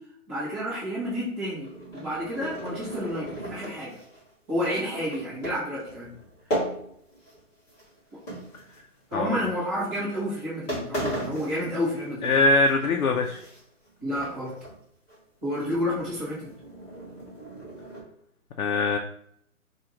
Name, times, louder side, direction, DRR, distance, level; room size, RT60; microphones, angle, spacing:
voice 1, 0.3-4.0 4.5-6.1 9.1-12.3 14.0-14.5 15.4-16.5, equal, 10° right, -14 dB, 0.8 m, -30 dB
sound 1, 1.3-7.4 7.7-9.2 9.8-10.0 10.4-10.5 10.7-12.4 12.7-13.9 14.2-14.8 15.1-15.2 15.5-18.0, right 1 dB, 10° left, 1.0 m, -36 dB
voice 2, 12.2-13.4 18.6-19.0, left 2 dB, 65° left, 3 dB, 0.6 m, -22 dB
4.7 x 2.4 x 2.9 m, 0.69 s
hypercardioid pair, 160°, 44 cm